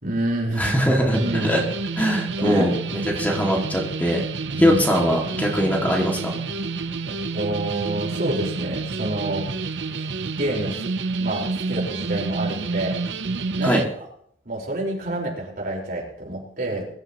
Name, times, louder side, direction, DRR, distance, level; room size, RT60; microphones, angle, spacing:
voice 1, 0.0-1.5 2.4-2.7 4.5-4.8 7.1-9.5 10.0-10.1 10.4-13.0 13.5-13.8 14.4-16.9, right 1 dB, 55° right, -2 dB, 4.7 m, -28 dB
voice 2, 0.6-1.6 2.0-2.7 3.2-4.2 4.6-6.4 13.6-13.8, equal, 10° left, -1 dB, 2.3 m, -21 dB
sound 1, 1.1-13.8, right 4 dB, 90° right, 0.7 m, -29 dB
23.0 x 12.5 x 3.1 m, 0.66 s
head